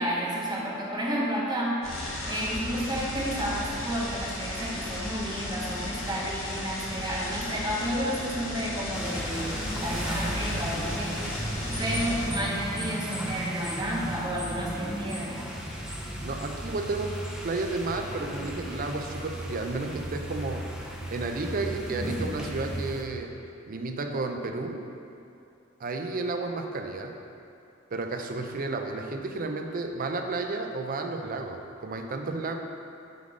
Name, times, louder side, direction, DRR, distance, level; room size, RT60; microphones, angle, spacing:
voice 1, 0.0-1.8 2.3-11.5 11.8-15.4, equal, 20° right, -4 dB, 1.1 m, -31 dB
sound 1, 1.8-12.3, left 1 dB, 75° left, 1.3 m, -35 dB
sound 2, 8.9-23.0, right 1 dB, 5° right, 0.6 m, -35 dB
voice 2, 16.1-20.7 21.1-23.3 23.7-24.8 25.8-27.1 27.9-32.6, right 3 dB, 45° right, 4 dB, 0.5 m, -32 dB
7.8 x 3.7 x 4.9 m, 2.7 s
head